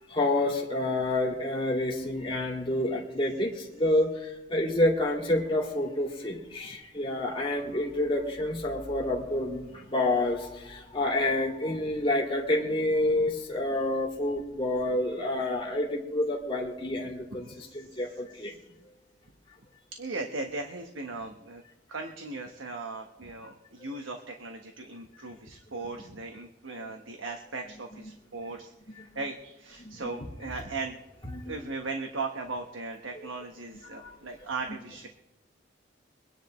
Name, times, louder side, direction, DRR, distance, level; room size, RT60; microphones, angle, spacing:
voice 1, 0.1-18.5 23.9-24.0 29.0-29.1 29.8-30.3 31.3-31.7 33.9-34.1, left 1 dB, 25° left, -1 dB, 2.4 m, -28 dB
voice 2, 17.4-18.0 18.4-18.5 20.0-21.6 21.9-28.7 29.1-31.0 31.4-35.1, right 3 dB, 85° right, 4 dB, 1.3 m, -38 dB
24.5 x 10.0 x 3.2 m, 0.97 s
head